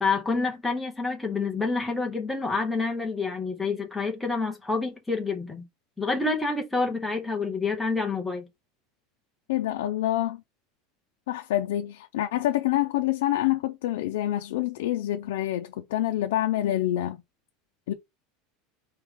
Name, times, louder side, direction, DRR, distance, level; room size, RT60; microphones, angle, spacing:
voice 1, 0.0-5.7 6.0-8.5, left 3 dB, 5° left, 0.9 m, -28 dB
voice 2, 9.5-10.4 11.3-17.2 17.9-18.0, left 13 dB, 85° left, 0.6 m, -27 dB
4.6 x 3.2 x 3.6 m
supercardioid pair, 175°, 0 cm